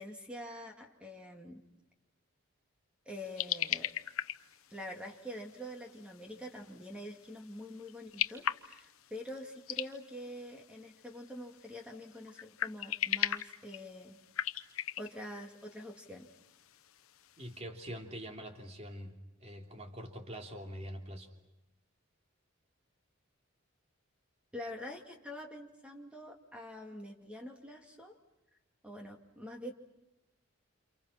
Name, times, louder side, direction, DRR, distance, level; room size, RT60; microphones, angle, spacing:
voice 1, 0.0-1.6 3.1-3.9 4.7-14.2 15.0-16.3 24.5-28.2 28.8-29.7, left 1 dB, 5° right, 2 dB, 2.3 m, -45 dB
sound 1, 3.1-17.6, left 10 dB, 85° left, 0.9 m, -40 dB
voice 2, 17.4-21.3, equal, 30° right, 3 dB, 3.1 m, -44 dB
29.5 x 29.0 x 5.8 m, 0.93 s
head